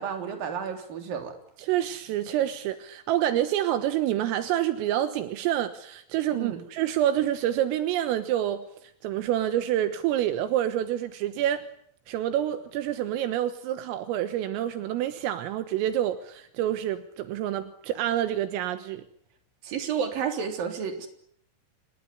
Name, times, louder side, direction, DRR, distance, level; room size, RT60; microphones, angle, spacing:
voice 1, 0.0-1.4 6.3-6.6 19.6-21.1, right 7 dB, 45° right, 5 dB, 4.7 m, -31 dB
voice 2, 1.6-11.7 12.1-19.0, right 12 dB, 80° right, 10 dB, 3.9 m, -27 dB
27.5 x 21.5 x 9.7 m, 0.69 s
omnidirectional pair, 6.0 m